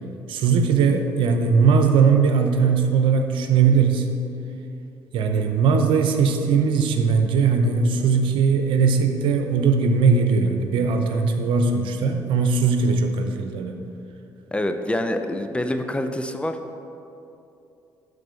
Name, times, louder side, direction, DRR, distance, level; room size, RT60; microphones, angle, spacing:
voice 1, 0.3-4.1 5.1-13.7, right 5 dB, 70° right, 6 dB, 0.8 m, -19 dB
voice 2, 14.5-16.6, left 1 dB, 10° left, 6 dB, 0.7 m, -26 dB
10.0 x 4.1 x 7.0 m, 2.7 s
supercardioid pair, 65°, 9 cm